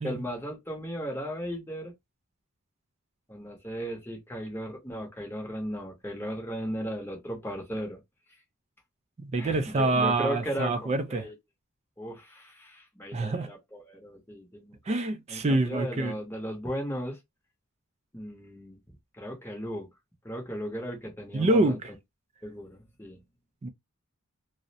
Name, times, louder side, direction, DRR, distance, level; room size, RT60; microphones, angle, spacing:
voice 1, 0.0-1.9 3.3-8.0 9.4-11.3 12.0-14.7 15.3-17.2 18.1-19.9 20.2-21.8 22.4-23.2, equal, 10° left, 0.7 m, -36 dB
voice 2, 9.2-11.3 13.1-13.5 14.9-16.2 21.3-21.9 23.6-23.7, right 2 dB, 30° right, 0.3 m, -26 dB
2.5 x 2.0 x 2.6 m
head